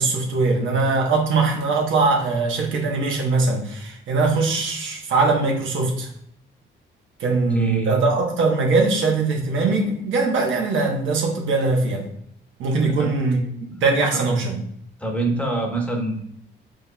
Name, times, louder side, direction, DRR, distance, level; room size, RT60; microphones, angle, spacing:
voice 1, 0.0-6.1 7.2-12.0 12.6-13.4 13.8-14.6, right 3 dB, 75° right, 0 dB, 1.0 m, -21 dB
voice 2, 7.3-8.0 13.0-13.1 13.7-13.8 15.0-16.2, right 2 dB, 5° left, 1 dB, 1.0 m, -26 dB
5.2 x 3.9 x 2.2 m, 0.71 s
cardioid pair, 90°, 20 cm